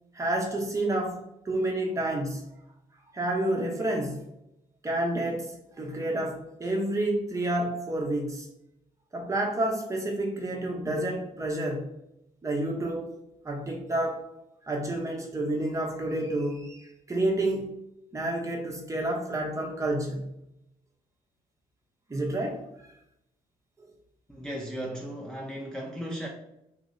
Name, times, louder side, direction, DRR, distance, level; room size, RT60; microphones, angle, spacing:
voice 1, 0.1-1.2 1.4-2.6 3.1-4.3 4.8-8.5 9.1-11.9 12.4-13.1 13.4-14.2 14.7-17.7 18.1-20.3 22.1-22.6 23.8-23.9, right 1 dB, 25° right, 0.8 m, -29 dB
voice 2, 24.3-26.3, equal, 5° left, 0.5 m, -36 dB
2.9 x 2.0 x 3.7 m
cardioid pair, 90°, 14 cm